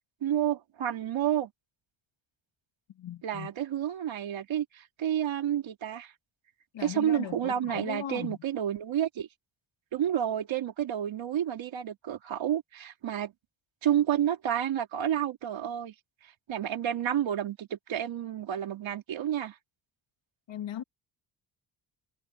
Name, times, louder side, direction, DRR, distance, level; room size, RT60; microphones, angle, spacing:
voice 1, 0.2-1.5 3.2-6.1 6.8-9.3 9.9-13.3 13.8-15.9 16.5-19.6, right 10 dB, 75° right, 3.3 m, -30 dB
voice 2, 3.0-3.5 6.7-8.4 20.5-20.8, left 10 dB, 70° left, 2.2 m, -38 dB
cardioid pair, 105°, 47 cm